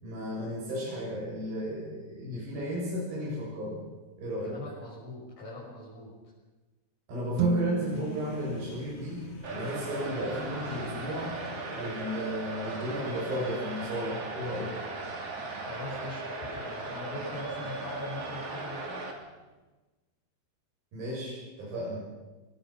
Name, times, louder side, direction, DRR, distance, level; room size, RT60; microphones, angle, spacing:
voice 1, 0.0-3.8 4.2-4.6 7.1-9.2 9.5-11.4 11.7-14.8 20.9-22.0, equal, 60° right, -6 dB, 9.0 m, -34 dB
voice 2, 4.4-6.1 15.6-19.1, left 2 dB, 65° left, -6 dB, 8.4 m, -42 dB
sound 1, 7.3-9.8, right 5 dB, 75° right, 1.4 m, -32 dB
sound 2, 7.9-19.6, right 1 dB, 40° left, 5.8 m, -51 dB
sound 3, 9.4-19.1, right 3 dB, 40° right, 3.8 m, -37 dB
27.0 x 22.5 x 6.0 m, 1.2 s
omnidirectional pair, 4.7 m